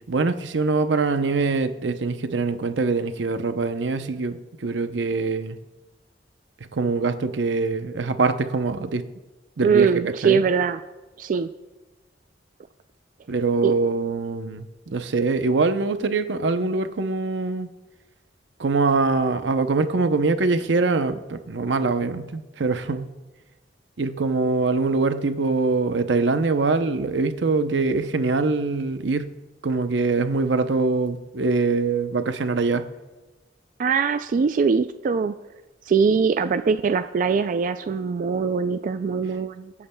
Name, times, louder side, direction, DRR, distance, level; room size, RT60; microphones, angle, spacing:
voice 1, 0.1-5.6 6.7-9.0 9.6-10.4 13.3-17.7 18.6-23.1 24.0-29.3 29.6-32.9, right 3 dB, 90° right, 9 dB, 0.7 m, -23 dB
voice 2, 9.6-10.8 11.2-11.5 13.6-13.7 33.8-35.3 35.9-39.7, right 5 dB, 45° right, 10 dB, 0.3 m, -22 dB
23.0 x 8.6 x 2.2 m, 1.2 s
head